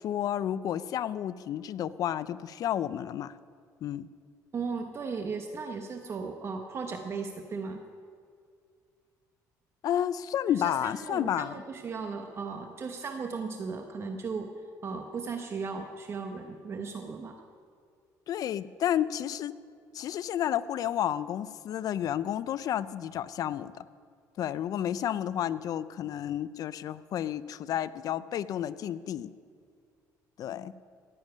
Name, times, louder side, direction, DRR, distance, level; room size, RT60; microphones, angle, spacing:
voice 1, 0.0-3.4 3.8-4.1 9.8-11.6 18.3-19.5 19.9-23.9 24.4-29.3 30.4-30.7, left 10 dB, 60° left, 16 dB, 0.5 m, -31 dB
voice 2, 4.5-7.8 10.5-14.5 14.8-17.4, right 5 dB, 40° right, 4 dB, 1.0 m, -36 dB
15.0 x 7.3 x 9.3 m, 2.2 s
cardioid pair, 110°, 7 cm